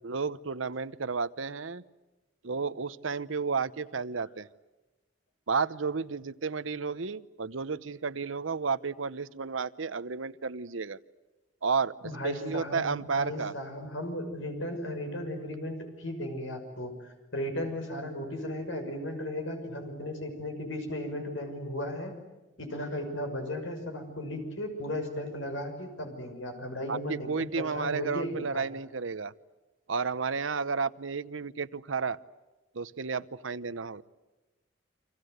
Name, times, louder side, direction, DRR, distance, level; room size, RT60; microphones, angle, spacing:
voice 1, 0.0-1.8 2.4-4.5 5.5-11.0 11.6-13.5 26.9-29.3 29.9-32.2 32.7-34.0, right 5 dB, 90° right, 14 dB, 0.9 m, -32 dB
voice 2, 12.0-12.9 13.1-22.1 22.6-28.6, left 1 dB, 80° left, 5 dB, 6.3 m, -36 dB
30.0 x 25.0 x 8.0 m, 1.1 s
head